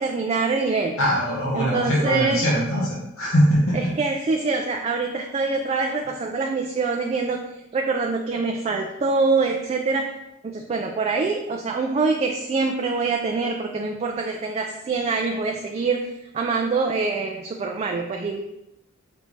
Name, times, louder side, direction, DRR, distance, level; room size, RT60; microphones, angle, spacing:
voice 1, 0.0-0.9 1.5-2.4 3.7-7.4 7.7-10.1 10.4-18.4, right 4 dB, 30° right, 1 dB, 0.3 m, -25 dB
voice 2, 1.0-3.9, equal, 70° left, -6 dB, 1.0 m, -22 dB
5.1 x 3.3 x 3.1 m, 0.90 s
head